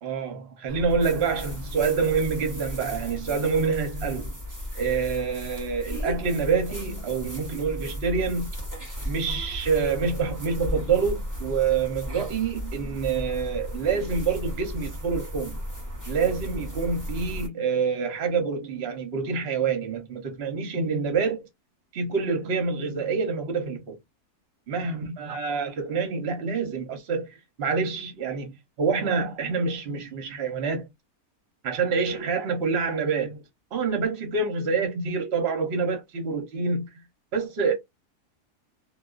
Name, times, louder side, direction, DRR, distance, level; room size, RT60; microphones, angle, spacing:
voice 1, 0.0-4.3 4.8-8.5 9.0-15.6 16.1-21.4 21.9-24.0 24.7-27.3 27.6-30.9 31.6-33.4 33.7-36.9 37.3-37.7, right 5 dB, 55° right, 0.8 m, -27 dB
sound 1, 0.7-17.5, equal, 25° right, 0.4 m, -35 dB
2.4 x 2.3 x 2.3 m
omnidirectional pair, 1.7 m